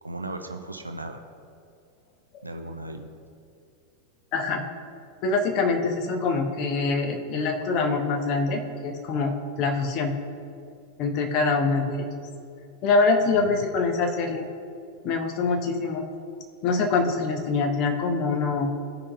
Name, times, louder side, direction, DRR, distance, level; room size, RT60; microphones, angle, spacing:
voice 1, 0.0-1.2 2.4-3.1 13.2-13.7, right 2 dB, 85° right, 6 dB, 0.6 m, -36 dB
voice 2, 4.3-4.6 5.2-10.1 11.0-12.1 12.8-14.4 15.0-16.1 16.6-18.7, left 4 dB, 40° left, 4 dB, 1.0 m, -24 dB
15.0 x 5.5 x 2.5 m, 2.4 s
figure-of-eight pair, 90°, 0 cm